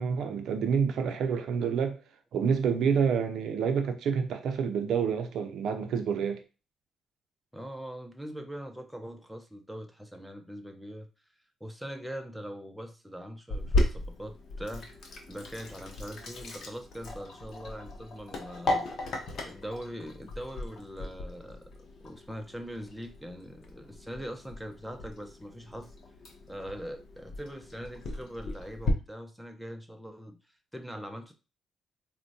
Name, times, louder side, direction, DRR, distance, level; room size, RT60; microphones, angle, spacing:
voice 1, 0.0-2.0 2.3-6.4, right 6 dB, 75° right, 0.5 m, -28 dB
voice 2, 7.5-11.1 11.6-14.9 15.3-18.9 19.4-21.7 22.0-25.9 26.5-30.4 30.7-31.3, equal, ahead, 0.6 m, -42 dB
Sink (filling or washing), 13.5-28.9, left 2 dB, 60° left, 0.7 m, -36 dB
4.3 x 2.1 x 2.6 m
cardioid pair, 90°, 0 cm